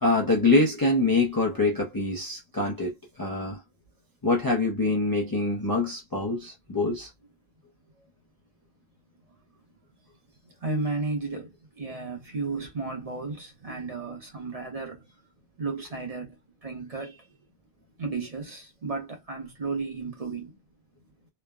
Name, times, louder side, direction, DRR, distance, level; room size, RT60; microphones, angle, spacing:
voice 1, 0.0-2.9 3.2-3.6 4.2-7.1, left 2 dB, 30° left, 0.4 m, -24 dB
voice 2, 10.6-15.1 15.6-17.3 18.0-20.6, right 3 dB, 40° right, 0.9 m, -33 dB
3.1 x 2.1 x 2.3 m
omnidirectional pair, 1.1 m